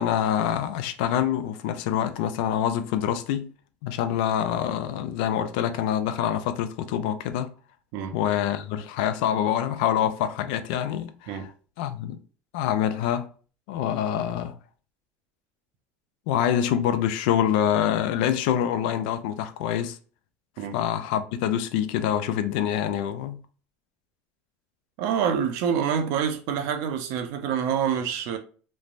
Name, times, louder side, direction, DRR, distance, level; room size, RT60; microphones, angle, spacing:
voice 1, 0.0-3.5 3.8-7.5 8.1-11.5 11.8-12.2 12.5-13.3 13.7-14.5 16.3-20.0 20.7-23.4, left 10 dB, 85° left, 0.4 m, -26 dB
voice 2, 25.0-28.4, right 8 dB, 75° right, 0.6 m, -26 dB
3.2 x 2.1 x 2.5 m
supercardioid pair, 115°, 5 cm